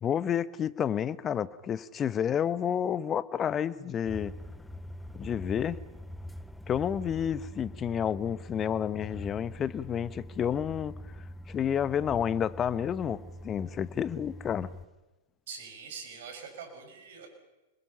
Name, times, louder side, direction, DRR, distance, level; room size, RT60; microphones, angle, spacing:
voice 1, 0.0-4.3 5.1-5.8 6.7-11.0 11.5-14.7, left 8 dB, 25° left, 0.9 m, -30 dB
sound 1, 4.1-14.9, left 1 dB, 5° left, 0.9 m, -44 dB
voice 2, 15.5-17.3, right 6 dB, 60° right, 6.4 m, -43 dB
29.5 x 21.5 x 5.7 m
hypercardioid pair, 105°, 0 cm